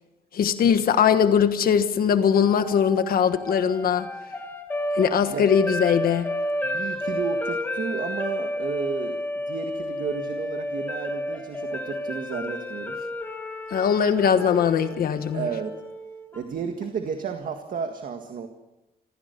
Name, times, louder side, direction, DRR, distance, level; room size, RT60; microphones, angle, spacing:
voice 1, 0.3-4.1 5.0-6.3 13.7-15.5, left 7 dB, 65° left, 1.3 m, -21 dB
sound 1, 2.3-16.4, left 1 dB, 10° left, 1.8 m, -32 dB
voice 2, 6.6-9.2 9.5-13.0 15.3-15.8 16.3-18.5, right 6 dB, 55° right, 1.8 m, -32 dB
26.5 x 16.0 x 6.7 m
wide cardioid pair, 175°, 17 cm